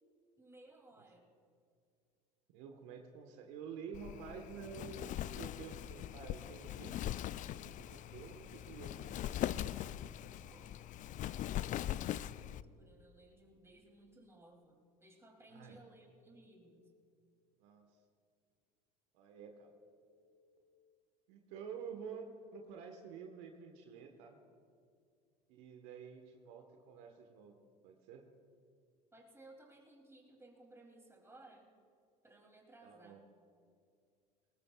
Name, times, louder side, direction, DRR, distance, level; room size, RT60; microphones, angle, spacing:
voice 1, 0.4-1.3 10.4-10.9 11.5-16.9 29.1-31.7 32.2-33.2, right 2 dB, 10° right, 1 dB, 2.9 m, -60 dB
voice 2, 2.5-5.0 5.3-7.0 7.6-9.5 15.5-15.8 17.6-17.9 19.1-19.7 21.3-24.4 25.5-27.6 27.8-28.2 32.8-33.2, right 6 dB, 65° right, 4 dB, 1.3 m, -50 dB
Wind, 3.9-12.6, left 12 dB, 40° left, 0.4 m, -41 dB
Telephone, 16.1-16.6 19.6-20.6 21.8-22.7, right 1 dB, 80° right, 1.7 m, -73 dB
21.5 x 19.0 x 2.4 m, 2.3 s
hypercardioid pair, 70°, 21 cm